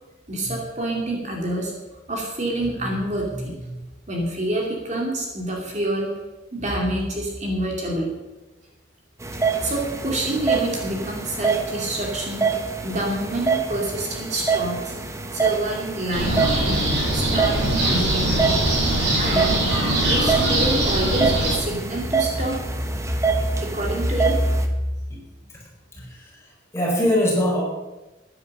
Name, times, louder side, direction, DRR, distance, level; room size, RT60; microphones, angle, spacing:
voice 1, 0.3-1.7 2.1-3.8 4.1-6.1 6.5-8.1 9.6-14.9 15.3-16.8 17.1-18.7 19.2-19.5 20.1-22.8 23.6-24.4 25.2-25.3, right 1 dB, 35° right, -1 dB, 2.6 m, -27 dB
sound 1, 9.2-24.7, right 5 dB, 15° right, 1.2 m, -26 dB
sound 2, 16.1-21.5, right 1 dB, 60° right, 5.4 m, -21 dB
voice 2, 26.0-27.6, left 1 dB, 15° left, -3 dB, 4.5 m, -23 dB
14.5 x 9.9 x 6.7 m, 1.1 s
head